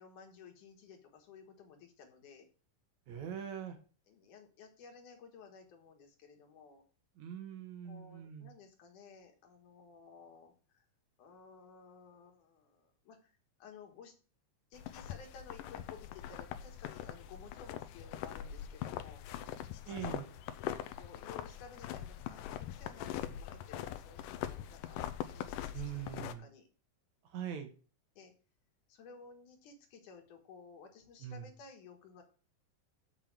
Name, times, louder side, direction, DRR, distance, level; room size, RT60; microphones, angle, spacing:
voice 1, 0.0-2.5 4.1-6.8 7.8-10.8 11.2-14.1 14.7-20.2 20.5-20.7 21.0-26.7 28.2-28.3 28.9-32.2, left 5 dB, 70° left, 4 dB, 3.0 m, -55 dB
voice 2, 3.1-3.8 7.2-8.5 19.9-20.3 25.7-26.4 27.3-27.7 31.2-31.4, right 9 dB, 65° right, 6 dB, 2.3 m, -42 dB
sound 1, 14.7-26.3, left 11 dB, 85° left, 2.3 m, -42 dB
7.0 x 5.6 x 7.4 m, 0.38 s
omnidirectional pair, 3.8 m